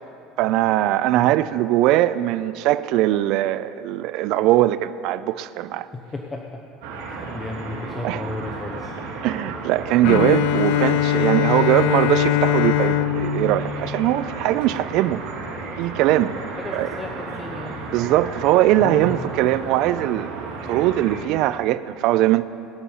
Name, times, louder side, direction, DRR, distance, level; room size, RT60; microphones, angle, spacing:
voice 1, 0.4-5.9 8.0-8.2 9.2-15.2 15.8-16.4 16.7-16.9 17.9-22.5, right 14 dB, 65° right, 14 dB, 0.4 m, -21 dB
voice 2, 5.9-6.7 7.1-8.9 16.3-17.8 18.8-19.5, left 2 dB, 15° left, 1 dB, 0.9 m, -34 dB
sound 1, 6.8-21.2, right 3 dB, 85° right, 2.7 m, -34 dB
Bowed string instrument, 10.0-14.9, left 12 dB, 80° left, 0.4 m, -22 dB
18.0 x 9.8 x 5.5 m, 2.7 s
cardioid pair, 130°, 0 cm